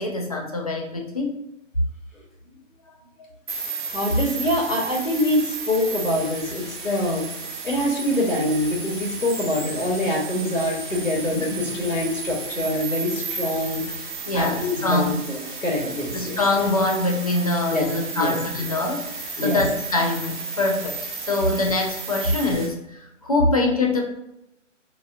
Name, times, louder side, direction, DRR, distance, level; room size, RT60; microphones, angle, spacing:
voice 1, 0.0-1.4 3.2-3.3 11.3-11.6 14.3-15.2 16.1-24.0, left 2 dB, 30° left, 1 dB, 0.4 m, -24 dB
sound 1, 3.5-22.7, right 4 dB, 40° right, 0.8 m, -33 dB
voice 2, 3.9-7.3 7.6-13.8 14.3-16.4 17.7-17.9 18.2-18.3 19.4-19.6, left 1 dB, 85° left, -2 dB, 1.1 m, -24 dB
4.4 x 2.8 x 2.5 m, 0.85 s
figure-of-eight pair, 135°, 38 cm